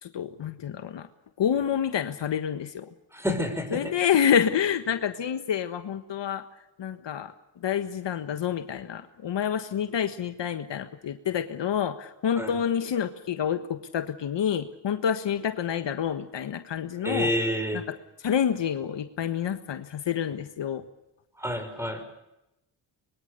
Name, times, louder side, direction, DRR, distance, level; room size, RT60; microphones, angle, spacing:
voice 1, 0.0-1.1 1.4-2.9 3.7-6.4 6.8-7.3 7.6-17.3 18.2-20.8, left 8 dB, 65° left, 9 dB, 1.5 m, -28 dB
voice 2, 3.1-3.9 12.4-12.6 17.0-17.9 21.4-22.0, equal, 5° right, 9 dB, 5.6 m, -29 dB
24.5 x 23.0 x 6.8 m, 0.92 s
cardioid pair, 90°, 48 cm